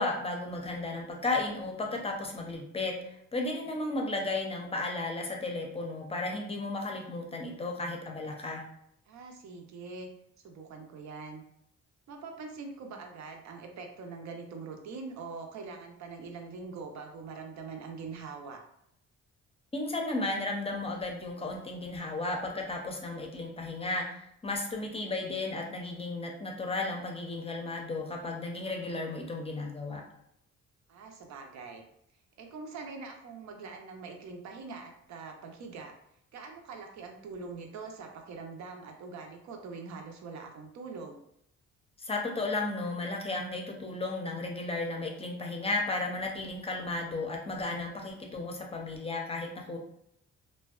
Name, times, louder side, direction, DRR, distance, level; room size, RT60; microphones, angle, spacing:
voice 1, 0.0-8.6 19.7-30.0 42.0-49.8, left 2 dB, 20° left, 1 dB, 0.5 m, -34 dB
voice 2, 9.1-10.1 10.4-11.4 12.1-18.6 30.9-31.8 32.4-35.9 36.3-41.2, right 4 dB, 65° right, 3 dB, 0.6 m, -43 dB
2.5 x 2.1 x 2.3 m, 0.74 s
cardioid pair, 90°, 30 cm